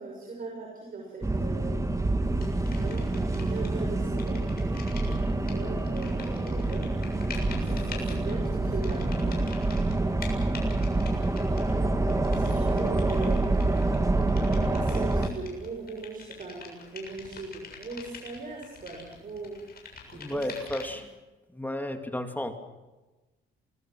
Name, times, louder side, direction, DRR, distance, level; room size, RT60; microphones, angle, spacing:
voice 1, 0.0-2.0 2.7-4.5 5.4-9.5 10.8-13.9 14.7-19.6 20.1-21.0, right 3 dB, 45° right, 0 dB, 6.3 m, -40 dB
sound 1, 1.2-15.3, right 2 dB, 15° right, 2.1 m, -27 dB
sound 2, 2.4-3.8 4.1-21.1, left 5 dB, 50° left, 7.1 m, -46 dB
voice 2, 20.1-21.0 21.5-22.5, left 1 dB, 10° left, 6 dB, 2.4 m, -33 dB
27.5 x 20.5 x 6.3 m, 1.1 s
cardioid pair, 90°, 20 cm